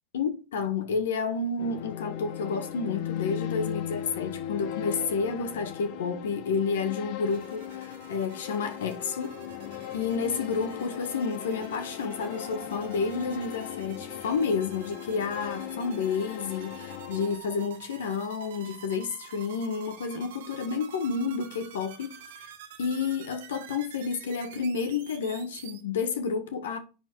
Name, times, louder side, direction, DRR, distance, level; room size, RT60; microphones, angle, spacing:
voice 1, 0.1-9.4 9.9-22.5 22.8-26.8, left 5 dB, 90° left, 1.4 m, -30 dB
sound 1, 1.6-17.4, left 10 dB, 65° left, 1.1 m, -38 dB
sound 2, 7.3-25.8, right 10 dB, 85° right, 1.8 m, -48 dB
10.0 x 4.3 x 4.6 m
hypercardioid pair, 105°, 0 cm